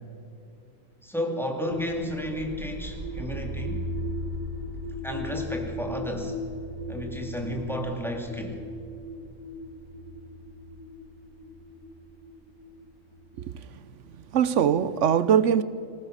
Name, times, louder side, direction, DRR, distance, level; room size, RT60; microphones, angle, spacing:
voice 1, 1.0-3.8 5.0-6.4 6.9-8.6, equal, ahead, 2.3 m, -32 dB
sound 1, 1.7-13.5, left 1 dB, 15° right, 1.3 m, -37 dB
voice 2, 13.4-13.8 14.3-15.6, right 8 dB, 65° right, 0.7 m, -22 dB
25.0 x 16.0 x 6.5 m
omnidirectional pair, 1.9 m